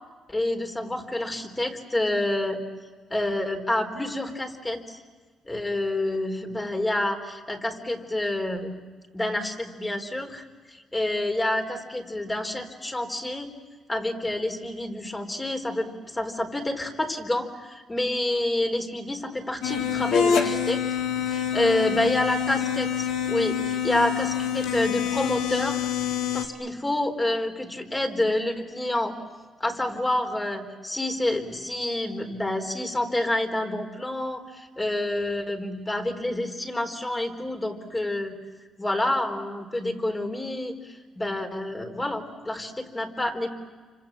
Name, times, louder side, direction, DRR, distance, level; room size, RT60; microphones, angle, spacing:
voice 1, 0.3-2.6 3.1-5.0 5.4-8.7 9.1-13.5 13.9-20.8 21.3-25.8 26.3-29.1 29.6-38.3 38.8-43.5, left 1 dB, 20° left, 4 dB, 4.3 m, -28 dB
sound 1, 19.6-26.5, left 8 dB, 90° left, 2.8 m, -26 dB
30.0 x 26.0 x 7.6 m, 1.4 s
cardioid pair, 90°, 0 cm